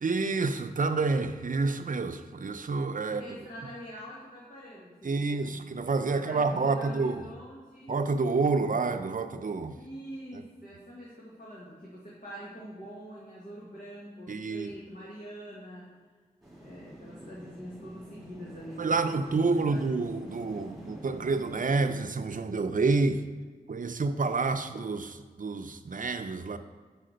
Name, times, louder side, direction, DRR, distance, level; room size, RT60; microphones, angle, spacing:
voice 1, 0.0-3.2 5.0-7.2 7.9-9.7 14.3-14.7 18.8-23.2 23.7-26.6, right 3 dB, 60° right, 9 dB, 0.5 m, -28 dB
voice 2, 3.0-5.6 6.1-8.0 9.7-15.9 16.6-19.9, equal, 60° left, -6 dB, 1.7 m, -45 dB
sound 1, 16.4-22.0, equal, ahead, 2.2 m, -46 dB
7.6 x 4.9 x 5.1 m, 1.4 s
wide cardioid pair, 55°, 16 cm